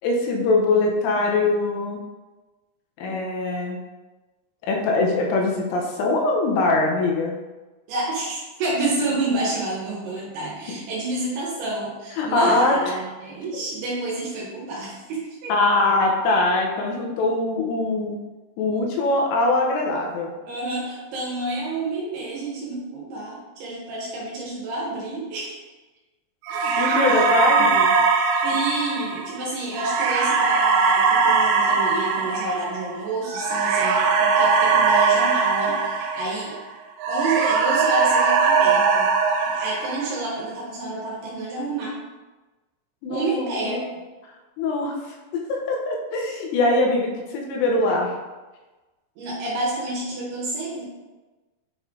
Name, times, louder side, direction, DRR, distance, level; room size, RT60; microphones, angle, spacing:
voice 1, 0.0-2.0 3.0-3.8 4.7-7.3 12.2-12.9 15.5-18.2 18.6-20.3 26.5-28.0 43.0-43.9 44.6-48.1, left 2 dB, 90° left, 0 dB, 3.5 m, -22 dB
voice 2, 7.9-15.5 20.4-25.6 28.4-36.6 37.1-39.1 39.4-42.0 43.1-43.9 49.2-50.9, right 2 dB, 70° right, -5 dB, 2.8 m, -29 dB
sound 1, 26.5-36.7 37.0-40.4, right 5 dB, 85° right, 3.1 m, -20 dB
8.6 x 3.2 x 3.7 m, 1.2 s
omnidirectional pair, 5.6 m